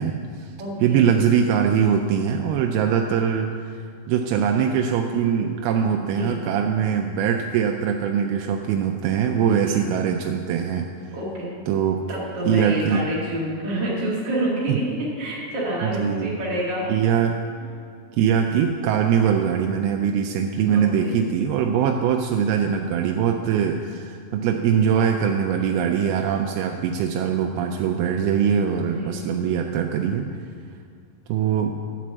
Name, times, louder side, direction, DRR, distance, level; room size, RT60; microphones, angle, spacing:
voice 1, 0.0-0.5 0.8-3.5 4.1-10.9 11.7-12.0 12.5-13.1 14.7-14.8 15.8-16.4 16.9-17.4 18.2-30.3 31.3-31.8, right 7 dB, 85° right, 3 dB, 2.2 m, -22 dB
voice 2, 0.6-1.1 5.9-6.4 9.4-9.9 11.1-11.5 12.1-16.9 20.7-21.1 28.8-29.2, right 1 dB, 45° right, -8 dB, 1.6 m, -28 dB
11.0 x 5.2 x 7.4 m, 2.1 s
omnidirectional pair, 4.7 m